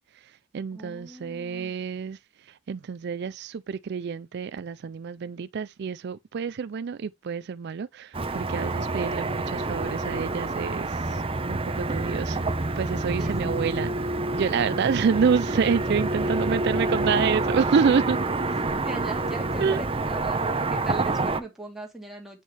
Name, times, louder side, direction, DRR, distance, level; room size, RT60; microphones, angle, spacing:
voice 1, 0.1-11.2 11.5-13.9 14.4-18.2 19.6-19.8, right 6 dB, 50° right, 0.4 m, -28 dB
voice 2, 0.7-1.7 13.2-13.5 18.6-22.4, right 2 dB, ahead, 2.4 m, -39 dB
Car passing by / Traffic noise roadway noise, 8.1-21.4, right 2 dB, 25° right, 0.8 m, -27 dB
8.3 x 6.3 x 3.3 m
head